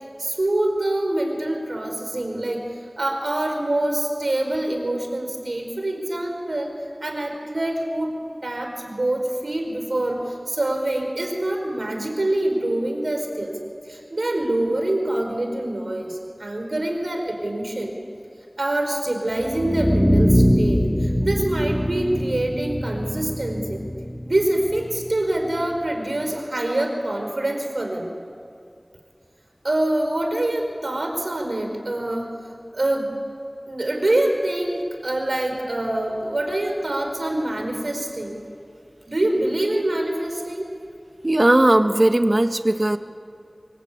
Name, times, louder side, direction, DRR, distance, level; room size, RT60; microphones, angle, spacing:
voice 1, 0.2-2.6 3.0-6.7 7.0-8.1 8.4-13.5 13.9-17.9 18.6-23.8 24.2-28.1 29.6-32.3 32.7-33.1 33.7-38.4 39.1-40.7, right 1 dB, 80° right, 3 dB, 4.7 m, -25 dB
sound 1, 19.4-25.4, equal, ahead, 1.8 m, -22 dB
voice 2, 41.2-43.0, right 1 dB, 45° right, 7 dB, 1.5 m, -17 dB
26.0 x 24.0 x 8.8 m, 2.5 s
wide cardioid pair, 45°, 0 cm